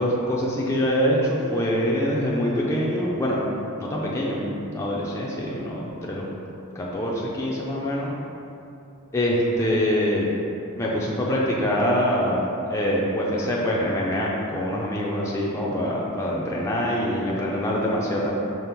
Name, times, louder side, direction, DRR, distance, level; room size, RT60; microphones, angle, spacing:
voice 1, 0.0-3.5 3.8-6.2 6.8-8.1 9.1-10.3 10.8-18.3, equal, 15° left, -5 dB, 0.4 m, -24 dB
5.2 x 2.0 x 4.3 m, 2.8 s
head